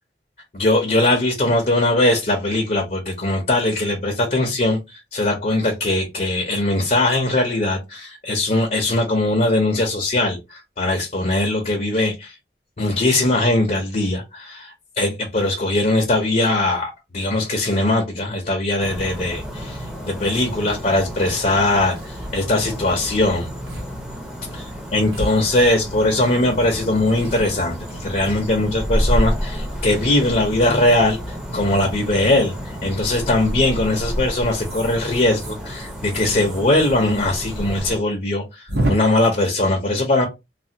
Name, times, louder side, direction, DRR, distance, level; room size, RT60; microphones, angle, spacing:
voice 1, 0.5-12.3 12.8-23.5 24.5-40.3, left 2 dB, 45° left, 0.7 m, -20 dB
sound 1, 18.8-38.0, equal, 5° right, 0.7 m, -30 dB
sound 2, 21.5-21.6 21.8-22.2 23.1-23.2 23.7-23.9 24.2-24.3 25.1-26.1 26.6-28.8 29.4-30.2 31.8-32.1 33.4-33.7 34.5-37.3 37.5-37.6 37.9-38.0 38.7-38.9, right 1 dB, 65° right, 0.9 m, -31 dB
3.3 x 2.3 x 2.7 m
head